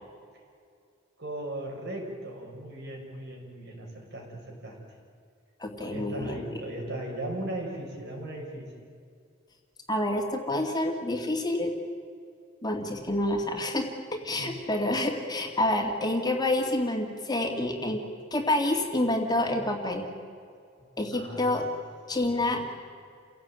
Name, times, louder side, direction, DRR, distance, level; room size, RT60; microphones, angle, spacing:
voice 1, 1.2-4.8 5.8-8.7 14.4-14.6 21.1-21.5 22.1-22.5, right 1 dB, 60° right, 0 dB, 6.4 m, -37 dB
voice 2, 5.6-6.4 9.9-11.7 12.6-18.0 18.3-20.1 21.0-21.7 22.1-22.7, left 1 dB, 20° left, 3 dB, 2.3 m, -28 dB
29.5 x 17.0 x 9.1 m, 2.3 s
head